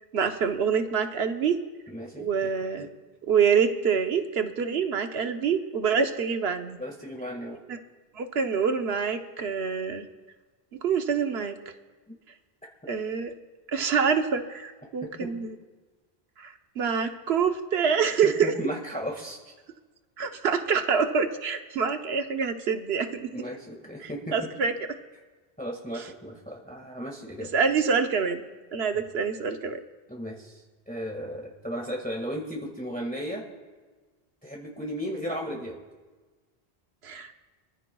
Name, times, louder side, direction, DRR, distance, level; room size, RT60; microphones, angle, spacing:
voice 1, 0.1-1.6 2.2-2.9 3.3-6.8 7.7-7.8 8.1-10.1 10.7-11.7 12.9-13.3 13.7-15.6 16.4-18.5 20.2-23.3 24.0-24.7 26.0-26.1 27.5-28.4 28.7-29.8 37.0-37.3, right 6 dB, 85° right, 7 dB, 1.1 m, -26 dB
voice 2, 1.9-2.5 2.8-2.9 6.8-7.6 15.2-15.3 18.2-19.5 23.3-24.3 25.6-27.5 30.1-33.4 34.4-35.8, equal, 10° left, -1 dB, 1.8 m, -35 dB
25.0 x 14.5 x 2.3 m, 1.3 s
omnidirectional pair, 1.0 m